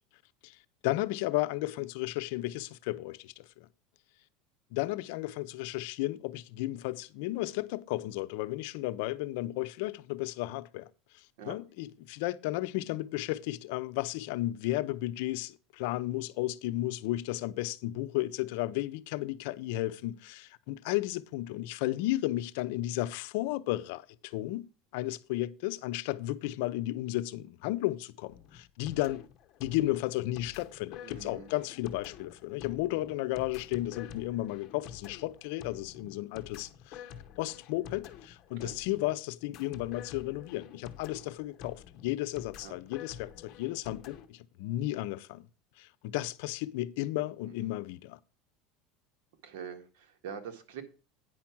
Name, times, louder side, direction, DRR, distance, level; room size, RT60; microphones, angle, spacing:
voice 1, 0.8-3.7 4.7-10.9 11.5-24.7 24.9-29.2 29.6-37.0 37.4-45.5 45.8-48.2, left 17 dB, 70° left, 0.6 m, -33 dB
sound 1, 28.3-44.3, left 8 dB, 40° left, 0.9 m, -48 dB
voice 2, 31.0-31.5 38.5-38.7 42.6-42.7 47.4-47.8 49.4-50.8, right 7 dB, 75° right, 1.7 m, -44 dB
9.3 x 5.9 x 6.0 m
supercardioid pair, 145°, 0 cm